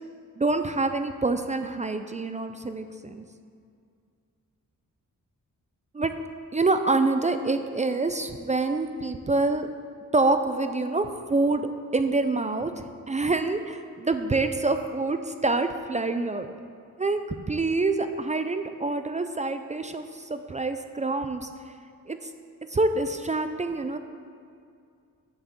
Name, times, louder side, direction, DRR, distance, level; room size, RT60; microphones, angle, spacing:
voice 1, 0.4-3.2 5.9-6.2 6.5-9.7 10.1-16.5 17.0-17.2 17.5-21.5 22.1-22.2 22.7-24.0, right 3 dB, 20° right, 8 dB, 0.4 m, -26 dB
8.1 x 5.8 x 7.6 m, 2.3 s
wide cardioid pair, 135°, 33 cm